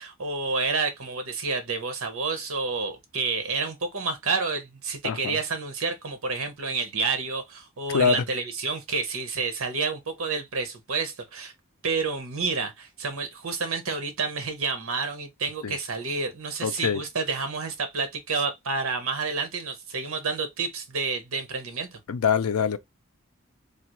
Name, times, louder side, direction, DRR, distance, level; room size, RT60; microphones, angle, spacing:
voice 1, 0.0-11.5 11.8-22.0, right 4 dB, 65° right, 0.9 m, -29 dB
voice 2, 5.0-5.4 7.9-8.2 15.6-15.7 16.6-17.0 22.1-22.8, left 6 dB, 80° left, 0.4 m, -24 dB
3.3 x 2.4 x 2.9 m
head